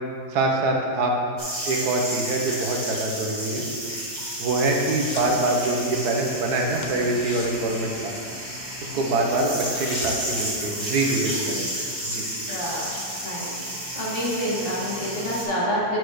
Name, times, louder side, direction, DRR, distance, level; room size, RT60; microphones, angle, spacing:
voice 1, 0.3-1.1 1.6-3.6 4.4-8.1 8.9-11.7 12.1-12.3, right 2 dB, 75° right, 1 dB, 1.4 m, -24 dB
sound 1, 1.4-15.4, right 1 dB, 25° right, 2.0 m, -32 dB
sound 2, 4.7-5.4 5.7-6.0 6.2-6.4 6.7-8.6 9.0-9.1 9.3-10.4 10.8-10.9, left 3 dB, 70° left, 0.4 m, -40 dB
voice 2, 12.4-12.9 13.2-13.5 13.9-16.0, equal, 50° left, -6 dB, 2.0 m, -28 dB
7.9 x 4.6 x 4.9 m, 2.3 s
omnidirectional pair, 1.7 m